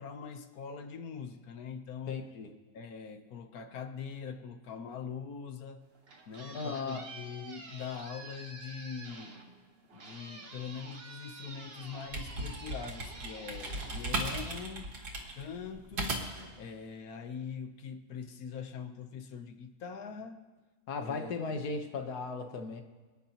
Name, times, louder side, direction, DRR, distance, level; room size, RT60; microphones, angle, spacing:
voice 1, 0.0-2.2 2.7-5.8 6.3-9.4 9.9-14.9 15.3-16.3 16.6-20.4 21.1-21.6, left 6 dB, 70° left, 8 dB, 1.3 m, -42 dB
voice 2, 2.1-2.5 6.5-7.1 20.9-22.8, left 4 dB, 90° left, 5 dB, 1.7 m, -36 dB
sound 1, 5.8-15.5, right 3 dB, 40° right, 1.3 m, -49 dB
sound 2, 11.8-16.5, right 2 dB, 90° right, 2.3 m, -37 dB
24.5 x 10.0 x 2.9 m, 1.3 s
omnidirectional pair, 1.6 m